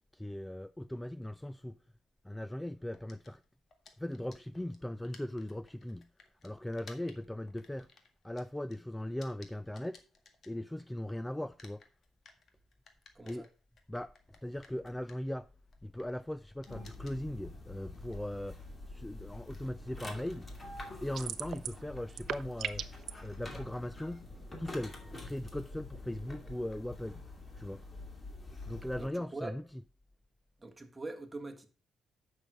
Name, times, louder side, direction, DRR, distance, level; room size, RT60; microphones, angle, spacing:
voice 1, 0.1-1.8 2.2-3.4 4.0-6.1 6.4-7.9 8.2-10.0 10.5-11.8 13.3-13.4 13.9-14.1 14.4-15.5 15.8-18.6 18.9-20.5 21.0-22.8 23.2-24.9 25.2-27.2 27.6-27.8 28.7-29.6, left 1 dB, 5° left, 0.3 m, -39 dB
sound 1, 2.9-11.1 11.4-19.6, left 4 dB, 55° left, 1.7 m, -60 dB
voice 2, 13.1-13.5 29.0-29.5 30.6-31.7, right 2 dB, 15° right, 1.6 m, -43 dB
sound 2, 16.7-29.1, left 2 dB, 25° left, 2.4 m, -47 dB
sound 3, 21.2-21.8 22.1-23.1, right 9 dB, 65° right, 0.7 m, -37 dB
8.9 x 6.3 x 4.9 m
cardioid pair, 90°, 0 cm